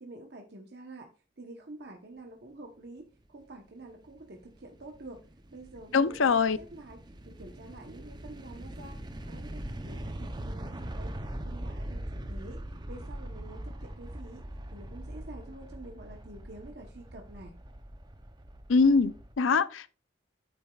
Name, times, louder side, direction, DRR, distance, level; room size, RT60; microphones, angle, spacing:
voice 1, 0.0-1.1 1.4-5.2 5.5-6.3 6.6-7.0 7.3-9.0 9.2-11.1 11.4-12.6 12.9-14.4 14.7-17.6, right 2 dB, 55° right, 1.0 m, -48 dB
sound 1, 3.8-19.4, right 1 dB, 20° right, 0.6 m, -42 dB
voice 2, 5.9-6.6 18.7-19.9, left 4 dB, 85° left, 0.6 m, -23 dB
8.9 x 8.7 x 2.4 m
head